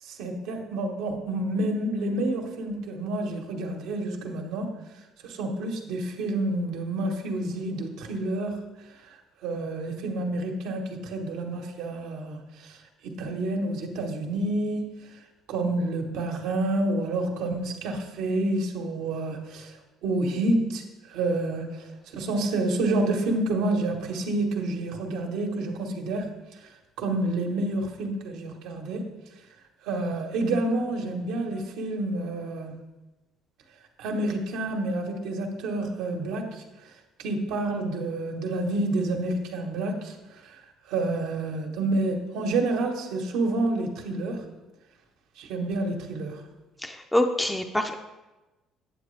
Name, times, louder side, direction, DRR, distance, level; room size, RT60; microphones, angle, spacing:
voice 1, 0.0-4.7 5.2-8.6 9.1-9.2 9.4-12.8 13.0-14.9 15.5-26.3 26.6-26.7 27.0-29.1 29.8-32.7 34.0-36.6 37.2-40.2 40.4-40.6 40.9-44.4 45.4-46.4, right 2 dB, 80° right, 3 dB, 1.2 m, -29 dB
voice 2, 46.8-48.0, left 1 dB, 10° left, 5 dB, 0.5 m, -25 dB
8.7 x 7.6 x 3.3 m, 1.1 s
cardioid pair, 100°, 0 cm